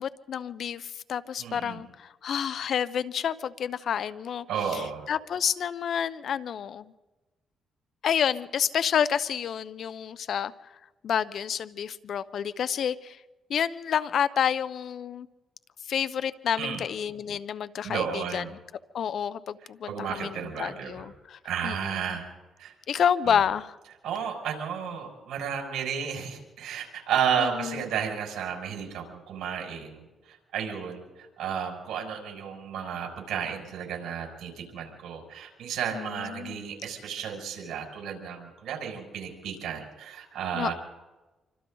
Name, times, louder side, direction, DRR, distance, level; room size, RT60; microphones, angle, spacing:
voice 1, 0.0-4.5 4.7-4.8 5.1-6.9 8.0-10.5 11.0-13.2 13.5-15.3 15.9-18.4 18.9-21.9 22.9-23.8 27.4-27.8 35.9-36.6 40.5-40.7, left 8 dB, 60° left, 16 dB, 0.8 m, -29 dB
voice 2, 1.4-1.8 4.5-5.1 16.6-16.8 17.8-18.5 19.9-21.0 21.4-22.3 22.6-22.7 23.3-23.4 24.0-40.7, right 7 dB, 75° right, 2 dB, 6.1 m, -33 dB
27.5 x 25.0 x 4.0 m, 1.1 s
cardioid pair, 90°, 0 cm